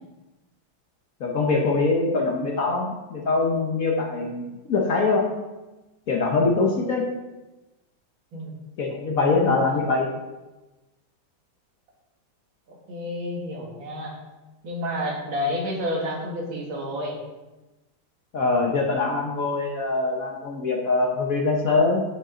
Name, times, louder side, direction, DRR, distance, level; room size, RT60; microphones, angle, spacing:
voice 1, 1.2-5.3 6.1-7.1 8.8-10.1 18.3-22.0, left 3 dB, 55° left, 0 dB, 1.1 m, -23 dB
voice 2, 12.7-14.2 14.6-17.2, left 1 dB, 80° right, -2 dB, 2.4 m, -30 dB
10.0 x 5.1 x 3.9 m, 1.1 s
omnidirectional pair, 2.2 m